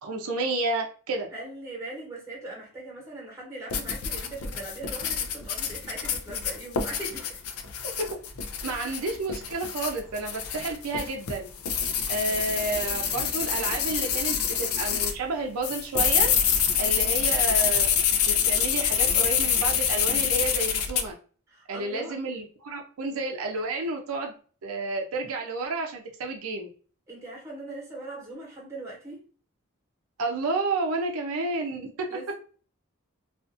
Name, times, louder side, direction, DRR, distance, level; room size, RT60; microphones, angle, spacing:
voice 1, 0.0-1.3 8.1-8.2 8.6-11.5 12.1-16.3 16.8-17.9 18.2-21.1 21.7-24.3 24.6-26.7 30.2-32.1, right 3 dB, 85° right, 0.5 m, -30 dB
voice 2, 1.3-7.4 8.8-9.0 12.3-12.5 21.5-22.2 27.1-29.3 32.1-32.3, right 2 dB, 15° right, 1.0 m, -40 dB
sound 1, 3.7-15.2 15.6-21.0, left 8 dB, 85° left, 0.4 m, -26 dB
2.4 x 2.4 x 2.5 m
head